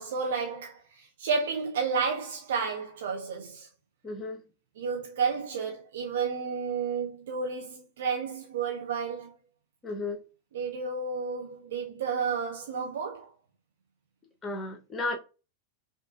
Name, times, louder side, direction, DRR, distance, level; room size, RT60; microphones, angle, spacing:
voice 1, 0.0-3.7 4.8-9.4 10.5-13.3, right 5 dB, 60° right, 0.6 m, -31 dB
voice 2, 4.0-4.4 9.8-10.2 14.4-15.2, left 2 dB, 20° left, 0.9 m, -33 dB
5.2 x 2.5 x 2.5 m
figure-of-eight pair, 90°, 0 cm